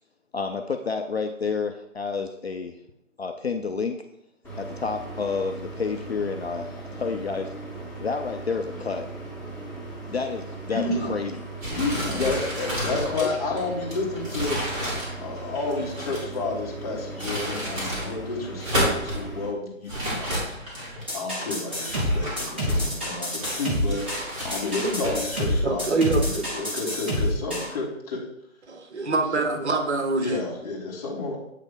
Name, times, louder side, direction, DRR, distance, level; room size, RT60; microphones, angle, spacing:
voice 1, 0.3-2.8 3.2-4.0 4.6-7.5 8.0-9.1 10.1-11.4 12.1-12.3 13.2-13.3, left 5 dB, 50° left, 5 dB, 0.5 m, -29 dB
sound 1, 4.4-19.5, right 2 dB, 5° left, 1.9 m, -38 dB
voice 2, 10.7-11.2 11.7-14.9 15.2-20.7 21.1-28.2 30.2-31.4, left 3 dB, 30° left, -4 dB, 1.5 m, -31 dB
sound 2, 11.6-16.4 17.0-18.1 18.5-19.2 19.9-21.1 21.7-23.0 23.4-25.4, equal, 25° right, 2.2 m, -31 dB
sound 3, 21.1-27.7, left 1 dB, 10° right, 0.6 m, -27 dB
voice 3, 24.8-25.2 25.6-26.6 28.7-30.4, right 3 dB, 55° right, 5 dB, 0.9 m, -25 dB
8.1 x 3.3 x 3.7 m, 0.80 s
figure-of-eight pair, 150°, 40 cm